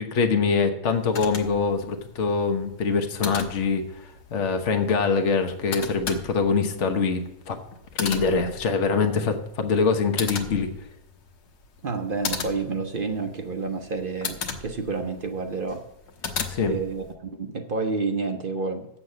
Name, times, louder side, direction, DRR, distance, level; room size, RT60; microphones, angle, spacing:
voice 1, 0.0-7.6 8.0-10.7 16.5-16.8, left 5 dB, 50° left, 6 dB, 1.2 m, -24 dB
sound 1, 0.9-17.1, left 5 dB, 85° left, 1.6 m, -37 dB
voice 2, 11.8-15.8 16.7-18.9, right 4 dB, 45° right, 5 dB, 0.7 m, -29 dB
7.7 x 6.9 x 8.3 m, 0.83 s
omnidirectional pair, 1.7 m